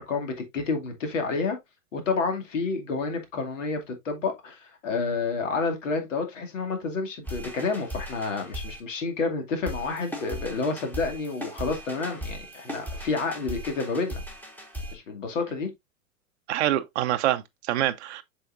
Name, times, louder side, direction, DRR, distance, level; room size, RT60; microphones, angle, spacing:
voice 1, 0.0-1.6 1.9-14.2 14.9-15.7, left 4 dB, 60° left, 2.5 m, -29 dB
sound 1, 7.2-8.8 9.7-14.9, equal, 5° left, 1.6 m, -38 dB
voice 2, 16.5-18.2, right 13 dB, 50° right, 0.6 m, -26 dB
7.6 x 5.8 x 2.5 m
figure-of-eight pair, 100°, 42 cm